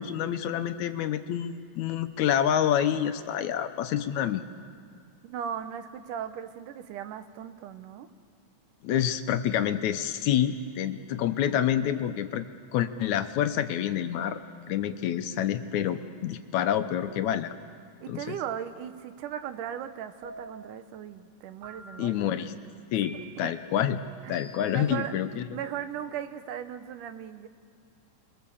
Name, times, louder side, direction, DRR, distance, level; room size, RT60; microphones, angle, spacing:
voice 1, 0.0-4.4 8.8-12.5 12.7-14.4 14.7-17.5 18.1-18.4 22.0-22.5 22.9-24.0 24.3-25.4, left 10 dB, 75° left, 9 dB, 2.1 m, -27 dB
voice 2, 5.2-8.1 18.0-22.4 24.2-24.4 24.7-25.2 25.5-27.5, right 9 dB, 85° right, 10 dB, 2.6 m, -37 dB
sound 1, 20.2-20.8 21.6-22.2 23.0-23.6 24.3-24.9, right 2 dB, 45° right, 3.7 m, -47 dB
28.0 x 22.0 x 7.1 m, 2.2 s
omnidirectional pair, 3.6 m